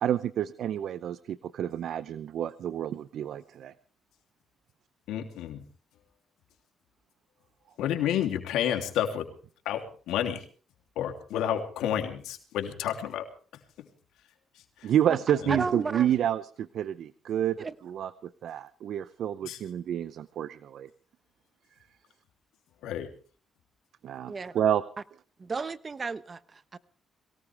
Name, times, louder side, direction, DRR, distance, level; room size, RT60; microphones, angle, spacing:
voice 1, 0.0-3.7 14.8-20.9 24.0-24.8, right 10 dB, 70° right, 15 dB, 0.7 m, -29 dB
voice 2, 5.1-5.6 7.8-9.3 9.6-9.8 10.1-10.4 11.0-13.2 14.8-14.9 15.4-15.6 19.4-19.6 22.8-23.1, left 10 dB, 90° left, 4 dB, 3.0 m, -30 dB
voice 3, 15.5-16.1 17.6-17.7 24.3-24.5 25.4-26.8, right 4 dB, 35° right, 13 dB, 1.2 m, -33 dB
22.5 x 18.0 x 3.5 m, 0.41 s
cardioid pair, 90°, 0 cm